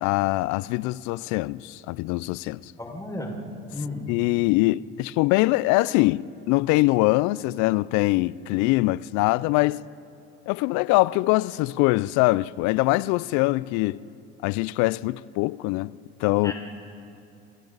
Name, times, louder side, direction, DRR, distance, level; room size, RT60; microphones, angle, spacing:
voice 1, 0.0-2.7 4.1-9.8 10.5-14.0 14.4-15.9 16.2-16.5, left 20 dB, 65° left, 0.6 m, -23 dB
voice 2, 2.8-3.4 3.7-4.1 16.4-16.5, left 2 dB, 10° left, 5.5 m, -33 dB
29.5 x 27.0 x 4.0 m
hypercardioid pair, 70°, 32 cm